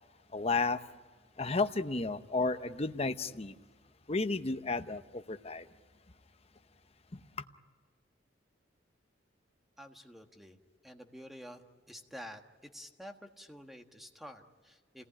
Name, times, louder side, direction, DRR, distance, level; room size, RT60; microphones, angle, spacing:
voice 1, 0.3-0.8 1.4-3.5 4.1-5.7 7.1-7.2, left 3 dB, 30° left, 0.8 m, -32 dB
voice 2, 9.8-10.6 10.8-11.6 11.9-12.4 12.7-15.1, equal, ahead, 1.5 m, -49 dB
28.0 x 18.5 x 10.0 m
head